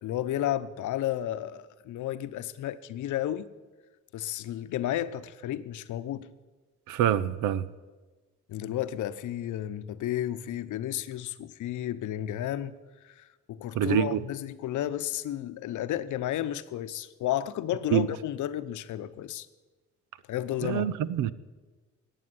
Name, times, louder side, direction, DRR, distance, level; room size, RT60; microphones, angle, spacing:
voice 1, 0.0-3.5 4.1-6.3 8.5-12.8 13.0-19.5 20.3-20.9, left 12 dB, 75° left, 0.8 m, -32 dB
voice 2, 6.9-7.7 13.7-14.2 17.9-18.1 20.6-21.3, right 10 dB, 90° right, 0.7 m, -25 dB
14.5 x 9.1 x 9.7 m
cardioid pair, 90°, 30 cm